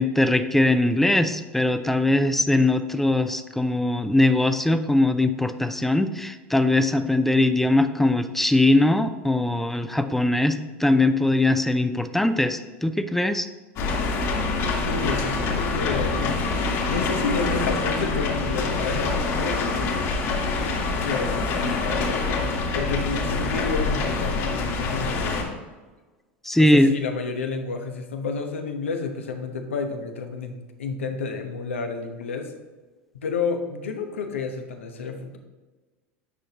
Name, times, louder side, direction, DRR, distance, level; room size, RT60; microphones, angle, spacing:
voice 1, 0.0-13.5 26.4-26.9, left 2 dB, 5° left, 9 dB, 0.6 m, -21 dB
sound 1, 13.8-25.4, left 3 dB, 50° left, 1.9 m, -25 dB
voice 2, 14.7-16.4 16.8-20.0 20.9-25.5 26.6-32.5 33.1-35.4, left 4 dB, 80° left, 5 dB, 1.0 m, -30 dB
9.2 x 6.4 x 3.0 m, 1.3 s
hypercardioid pair, 80°, 7 cm